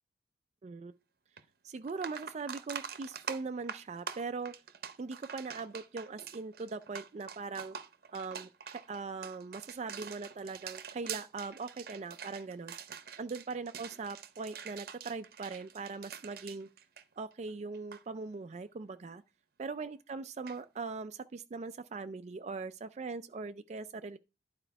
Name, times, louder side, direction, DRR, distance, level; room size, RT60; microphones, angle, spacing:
voice 1, 0.6-0.9 1.6-4.5 5.0-7.8 8.1-12.7 13.2-16.7 17.2-19.2 19.6-24.2, right 4 dB, 40° right, 0.3 m, -40 dB
sound 1, 1.4-1.5 1.8-17.5 17.7-18.0 20.5-20.6, right 7 dB, 55° right, 0.7 m, -45 dB
11.5 x 4.4 x 4.6 m
head